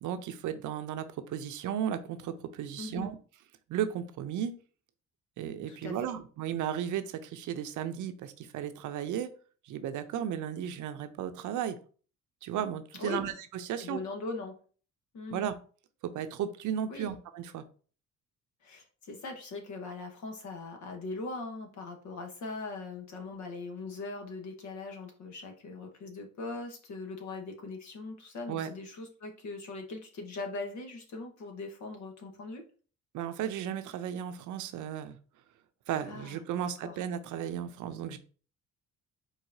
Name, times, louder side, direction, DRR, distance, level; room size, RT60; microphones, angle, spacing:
voice 1, 0.0-3.2 3.7-4.5 5.4-9.3 9.6-11.8 12.4-14.0 15.3-15.5 16.0-17.6 28.5-28.7 33.1-35.2 35.9-38.2, right 9 dB, 80° right, 10 dB, 0.7 m, -35 dB
voice 2, 2.8-3.1 5.7-6.0 13.0-13.2 13.8-14.5 15.1-15.5 16.9-17.1 18.6-32.6 36.0-37.0, left 3 dB, 70° left, 4 dB, 1.5 m, -40 dB
4.8 x 4.0 x 2.7 m, 0.39 s
cardioid pair, 90°, 30 cm